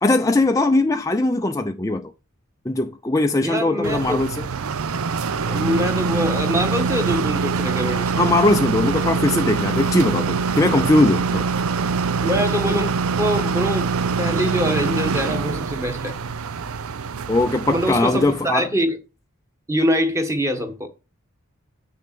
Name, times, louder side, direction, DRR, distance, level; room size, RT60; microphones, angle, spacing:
voice 1, 0.0-2.1 2.7-4.5 8.2-11.5 17.3-18.7, left 2 dB, 15° left, 0.5 m, -20 dB
voice 2, 3.4-4.2 5.4-8.2 12.2-12.9 13.2-13.9 14.2-16.2 17.7-19.0 19.7-20.9, equal, 15° right, 1.5 m, -24 dB
sound 1, 3.8-18.5, right 5 dB, 80° right, 0.6 m, -24 dB
7.8 x 6.8 x 6.9 m
head